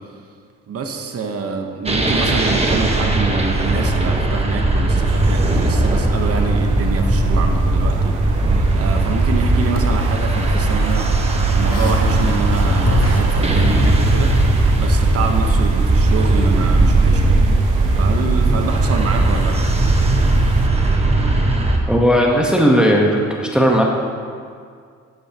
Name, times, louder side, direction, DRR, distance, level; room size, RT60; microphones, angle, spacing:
voice 1, 0.7-8.5 8.8-11.1 11.5-17.4 18.0-19.6, right 4 dB, 50° right, 4 dB, 1.1 m, -26 dB
sound 1, 1.9-21.8, right 2 dB, 20° right, 1.2 m, -17 dB
sound 2, 5.1-20.7, right 8 dB, 80° right, 0.6 m, -30 dB
sound 3, 9.2-14.4, left 1 dB, 60° left, 1.4 m, -26 dB
voice 2, 21.9-23.1 23.4-23.8, equal, 5° right, -1 dB, 1.1 m, -15 dB
12.0 x 9.3 x 2.9 m, 2.1 s
cardioid pair, 90°, 30 cm